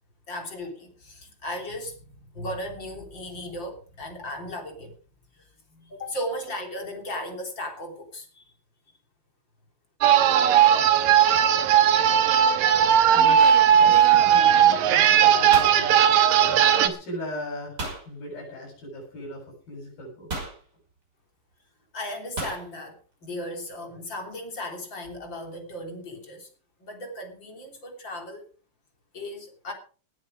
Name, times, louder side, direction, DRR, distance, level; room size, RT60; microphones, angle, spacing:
voice 1, 0.3-4.9 5.7-8.4 21.9-26.5 26.8-28.5 29.1-29.7, left 1 dB, 30° left, 3 dB, 3.9 m, -36 dB
sound 1, 10.0-16.9, right 9 dB, 75° right, 2.9 m, -18 dB
voice 2, 13.1-16.3 16.6-17.8 18.1-20.3, equal, 85° left, -1 dB, 9.7 m, -38 dB
sound 2, 15.5-16.7 17.8-18.1 19.2-19.3 20.3-20.6 22.4-22.7, right 2 dB, 25° right, 6.1 m, -34 dB
19.0 x 9.6 x 5.1 m, 0.40 s
omnidirectional pair, 4.1 m